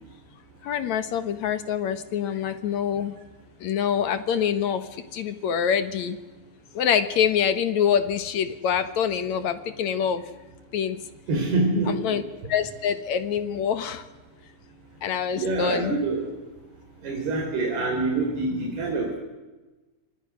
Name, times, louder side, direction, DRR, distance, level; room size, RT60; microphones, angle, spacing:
voice 1, 0.6-3.2 3.6-6.2 6.7-10.3 10.7-11.0 11.9-12.2 12.5-14.1 15.0-16.0, left 8 dB, 60° left, 11 dB, 2.2 m, -25 dB
voice 2, 11.3-12.2 15.3-16.3 17.0-19.2, right 2 dB, 85° right, 0 dB, 6.5 m, -26 dB
29.5 x 25.5 x 6.4 m, 1.2 s
omnidirectional pair, 4.4 m